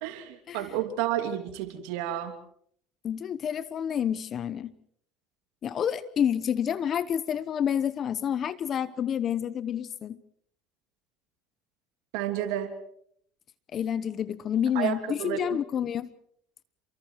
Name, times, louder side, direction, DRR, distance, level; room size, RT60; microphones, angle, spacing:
voice 1, 0.0-2.4 12.1-12.7 14.7-15.4, right 12 dB, 80° right, 6 dB, 2.9 m, -31 dB
voice 2, 3.0-4.7 5.6-10.2 13.7-16.1, left 9 dB, 45° left, 16 dB, 1.0 m, -29 dB
29.0 x 23.5 x 4.7 m, 0.64 s
supercardioid pair, 95°, 0 cm